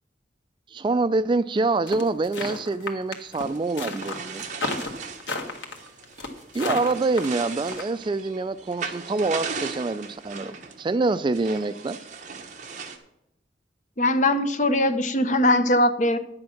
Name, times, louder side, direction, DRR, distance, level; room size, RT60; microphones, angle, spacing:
voice 1, 0.7-4.5 6.5-12.0, right 3 dB, 25° right, 14 dB, 0.3 m, -26 dB
sound 1, 1.9-7.8, left 2 dB, 90° left, 1.6 m, -32 dB
sound 2, 3.4-13.0, right 5 dB, 45° right, 1.2 m, -38 dB
voice 2, 14.0-16.2, left 1 dB, 40° left, 10 dB, 0.8 m, -21 dB
10.5 x 7.8 x 5.8 m, 0.82 s
head